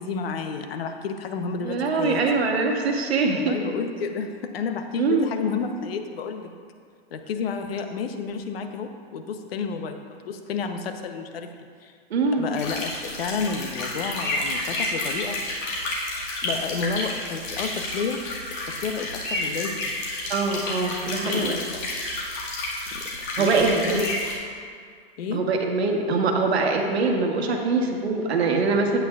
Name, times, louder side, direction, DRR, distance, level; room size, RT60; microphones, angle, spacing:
voice 1, 0.0-2.2 3.3-6.5 7.1-11.9 12.4-15.7 16.4-18.2 18.7-20.0 21.1-21.8 22.9-24.1 25.2-25.5, left 5 dB, 70° left, 6 dB, 0.9 m, -31 dB
voice 2, 1.6-3.7 5.0-5.3 12.1-12.5 20.3-21.6 23.4-24.0 25.3-29.0, right 4 dB, 85° right, 2 dB, 1.3 m, -23 dB
sound 1, 12.6-24.3, left 2 dB, 45° left, 1.9 m, -30 dB
11.0 x 8.9 x 2.4 m, 2.1 s
hypercardioid pair, 155°, 31 cm